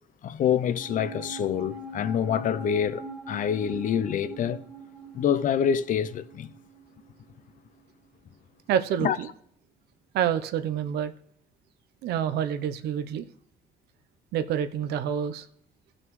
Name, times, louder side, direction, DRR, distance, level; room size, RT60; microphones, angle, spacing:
voice 1, 0.2-4.6 5.1-6.5 9.0-9.2, left 8 dB, 50° left, 0.5 m, -26 dB
sound 1, 0.7-7.3 7.5-7.6, right 2 dB, 5° left, 1.3 m, -42 dB
voice 2, 8.7-9.3 10.1-11.1 12.0-13.2 14.3-15.5, right 9 dB, 75° right, 0.7 m, -27 dB
16.0 x 6.2 x 3.1 m
cardioid pair, 110°, 17 cm